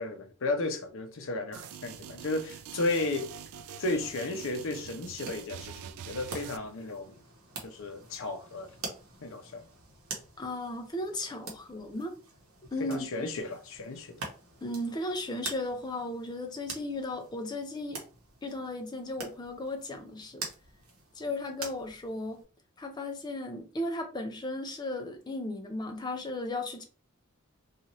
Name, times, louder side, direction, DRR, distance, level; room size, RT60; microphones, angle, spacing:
voice 1, 0.0-3.3 3.8-7.1 7.6-8.7 9.2-9.6 12.9-14.1, left 2 dB, 60° left, 0.6 m, -34 dB
sound 1, 1.5-6.6, right 8 dB, 80° right, 0.3 m, -44 dB
sound 2, 5.0-22.4, right 3 dB, 65° right, 0.8 m, -46 dB
voice 2, 10.4-12.1 12.7-13.1 14.6-18.0 18.4-20.4 21.2-22.4 22.8-26.8, left 1 dB, 20° left, 0.4 m, -35 dB
2.7 x 2.4 x 2.9 m
head